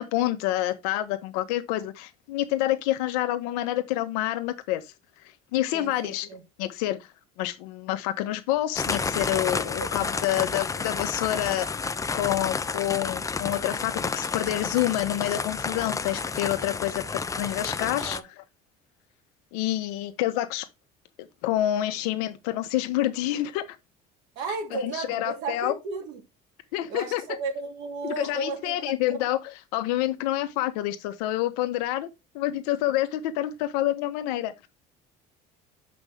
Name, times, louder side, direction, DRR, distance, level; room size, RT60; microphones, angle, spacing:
voice 1, 0.0-4.8 5.5-6.3 6.6-7.0 7.4-17.0 17.4-18.2 19.5-20.7 21.2-23.6 24.7-25.7 26.7-27.2 28.0-29.4 29.7-32.1 32.3-34.7, left 14 dB, 90° left, 1.1 m, -28 dB
voice 2, 5.7-6.4 9.7-10.2 18.0-18.3 24.4-26.2 26.9-29.2, right 4 dB, 75° right, 2.5 m, -34 dB
sound 1, 8.8-18.2, left 4 dB, 15° left, 0.5 m, -30 dB
6.2 x 5.3 x 3.5 m
supercardioid pair, 100°, 19 cm